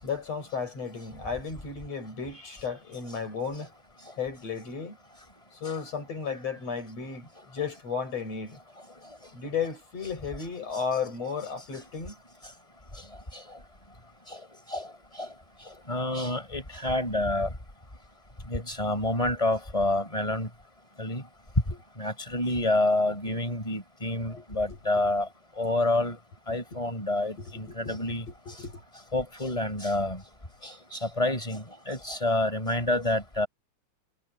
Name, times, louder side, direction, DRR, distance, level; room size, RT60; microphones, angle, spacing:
voice 1, 0.0-3.7 4.2-5.0 5.6-8.6 9.3-12.2 21.7-21.8 23.1-23.4 24.2-25.1 26.7-26.8 27.4-28.0 28.3-28.8, left 6 dB, 55° left, 7.4 m, -34 dB
voice 2, 15.9-17.5 18.5-20.5 21.0-21.2 22.0-25.3 25.6-26.2 26.5-28.2 29.1-30.2 30.9-33.5, left 2 dB, 10° left, 4.4 m, -28 dB
omnidirectional pair, 3.4 m